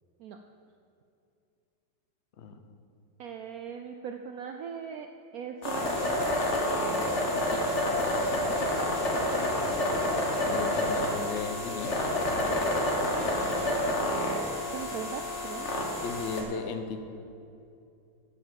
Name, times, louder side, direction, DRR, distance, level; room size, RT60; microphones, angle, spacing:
voice 1, 3.2-5.1 5.3-6.2 6.5-6.7 8.5-8.7 14.7-15.7, right 7 dB, 70° right, 5 dB, 0.8 m, -39 dB
sound 1, 5.6-16.4, left 1 dB, 40° left, 1.6 m, -28 dB
voice 2, 10.4-11.9 16.0-17.0, left 5 dB, 60° left, 8 dB, 0.7 m, -36 dB
8.5 x 7.1 x 7.5 m, 2.6 s
omnidirectional pair, 2.0 m